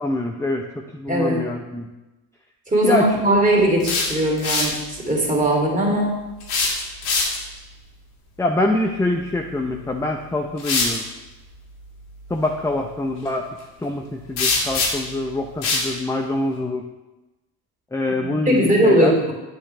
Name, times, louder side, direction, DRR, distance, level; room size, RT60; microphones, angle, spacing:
voice 1, 0.0-1.9 2.8-3.2 8.4-11.0 12.3-13.5 13.8-16.8 17.9-19.1, left 2 dB, 5° left, 2 dB, 0.7 m, -24 dB
voice 2, 1.1-1.4 2.7-6.2 18.2-19.3, right 1 dB, 15° right, -2 dB, 2.8 m, -19 dB
sound 1, 3.6-4.8 6.4-7.6 9.7-9.8 10.6-11.0 14.4-15.2 15.6-15.9, left 3 dB, 65° left, 2.3 m, -23 dB
8.4 x 7.7 x 3.4 m, 1.0 s
hypercardioid pair, 70°, 45 cm